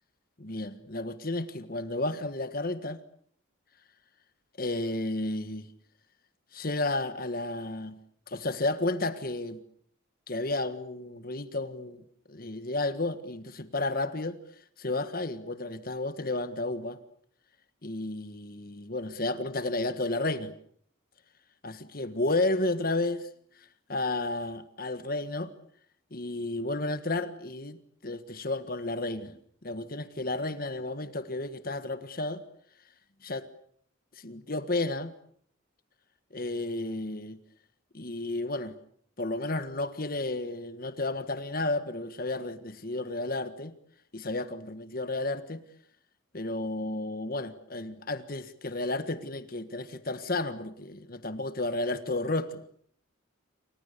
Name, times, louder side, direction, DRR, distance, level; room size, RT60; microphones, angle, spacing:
voice 1, 0.4-3.0 4.6-5.7 6.5-7.9 8.3-9.6 10.3-14.4 14.8-17.0 17.8-20.5 21.6-23.3 23.6-25.5 26.1-32.4 33.2-33.4 34.2-35.1 36.3-37.4 37.9-38.7 39.2-43.7 44.1-45.6 46.3-52.6, left 2 dB, 45° left, 1.6 m, -32 dB
29.0 x 26.0 x 6.9 m
head